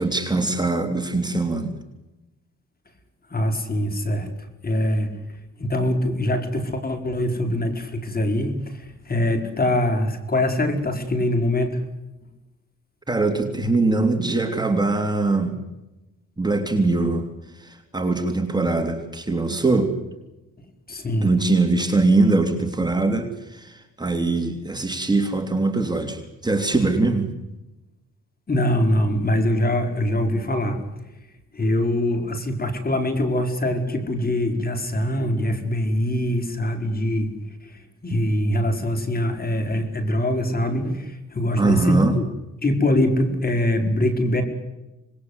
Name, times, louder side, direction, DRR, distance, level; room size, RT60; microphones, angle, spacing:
voice 1, 0.0-1.8 13.1-15.6 16.4-17.3 17.5-19.9 21.2-27.3 41.6-42.2, right 3 dB, 15° right, 5 dB, 3.1 m, -22 dB
voice 2, 3.3-4.3 4.6-5.1 5.6-11.8 20.9-21.3 28.5-30.8 31.5-37.3 37.6-42.2 42.6-44.4, left 1 dB, 30° left, 6 dB, 4.6 m, -23 dB
26.5 x 20.5 x 8.1 m, 1.0 s
cardioid pair, 90°, 30 cm